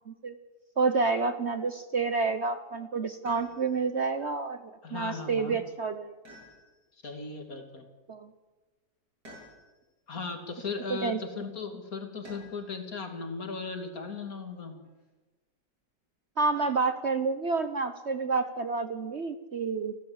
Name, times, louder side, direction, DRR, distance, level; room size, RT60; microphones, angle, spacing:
voice 1, 0.8-4.6 4.9-6.2 8.1-8.3 10.9-11.2 16.4-19.9, right 4 dB, 50° right, 10 dB, 1.0 m, -29 dB
sound 1, 3.3-3.9 6.2-7.0 9.2-10.0 12.2-12.8 14.5-15.1, equal, 65° right, 8.8 m, -51 dB
voice 2, 4.8-5.6 7.0-7.8 10.1-14.8, left 4 dB, 55° left, 5 dB, 2.9 m, -37 dB
29.0 x 12.0 x 7.9 m, 1.2 s
omnidirectional pair, 1.8 m